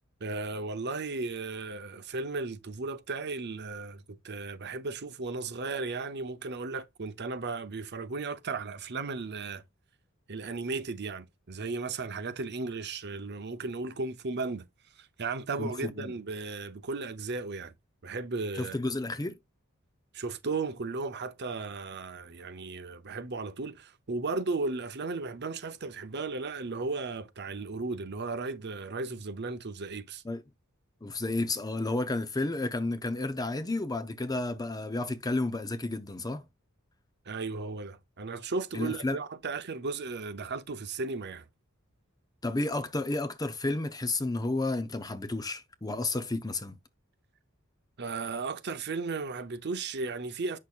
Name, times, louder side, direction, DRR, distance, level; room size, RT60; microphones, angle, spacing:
voice 1, 0.2-9.6 10.3-14.6 15.0-17.7 18.0-18.8 20.1-30.2 37.3-41.5 48.0-50.6, right 3 dB, 55° right, 0.8 m, -35 dB
voice 2, 15.6-16.1 18.6-19.3 30.2-30.4 31.0-36.4 38.7-39.2 42.4-46.8, left 2 dB, 20° left, 0.7 m, -31 dB
8.4 x 6.1 x 2.4 m
head